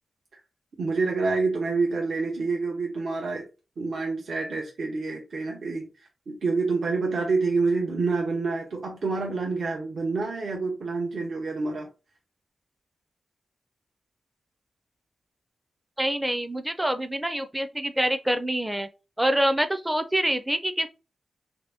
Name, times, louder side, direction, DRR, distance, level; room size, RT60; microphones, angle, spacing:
voice 1, 0.8-3.4 3.8-11.9, right 3 dB, 70° right, 0.8 m, -27 dB
voice 2, 16.0-18.9 19.2-20.9, right 1 dB, 10° right, 0.4 m, -26 dB
2.8 x 2.6 x 3.4 m
cardioid pair, 70°, 0 cm